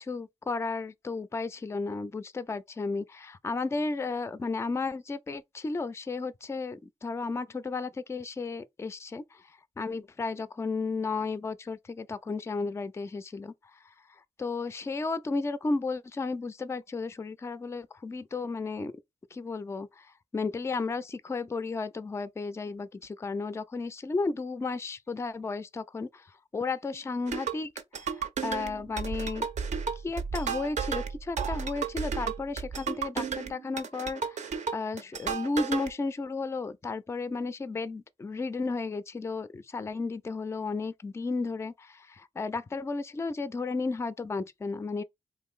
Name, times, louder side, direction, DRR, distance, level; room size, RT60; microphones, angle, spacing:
voice 1, 0.1-13.9 14.4-18.9 19.3-29.5 30.0-45.0, left 3 dB, 20° left, 0.3 m, -33 dB
sound 1, 27.3-35.9, right 6 dB, 60° right, 0.5 m, -33 dB
2.6 x 2.4 x 3.6 m
supercardioid pair, 45°, 14 cm